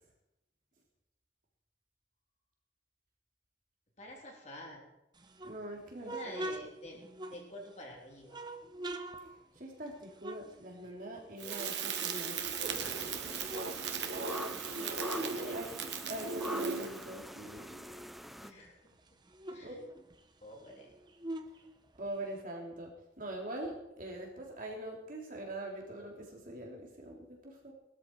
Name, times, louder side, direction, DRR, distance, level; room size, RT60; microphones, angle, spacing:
voice 1, 4.0-4.8 6.0-7.0 7.3-8.4 14.5-15.6 18.4-18.8 19.5-19.7 20.4-20.9, left 1 dB, 40° left, -1 dB, 3.5 m, -48 dB
sound 1, 5.1-7.8 8.3-11.2 11.4-12.8 13.2-15.4 15.7-18.3 18.6-18.7 19.0-22.4, right 1 dB, 25° right, 1.0 m, -45 dB
voice 2, 5.4-6.5 9.5-13.4 14.7-14.9 15.5-15.7 16.1-17.8 19.6-19.8 22.0-27.7, right 1 dB, 50° right, 0 dB, 3.2 m, -43 dB
Crackle, 11.4-17.1, right 5 dB, 70° right, 1.5 m, -37 dB
sound 2, 12.6-18.5, equal, ahead, 0.6 m, -45 dB
19.0 x 13.0 x 4.6 m, 0.86 s
head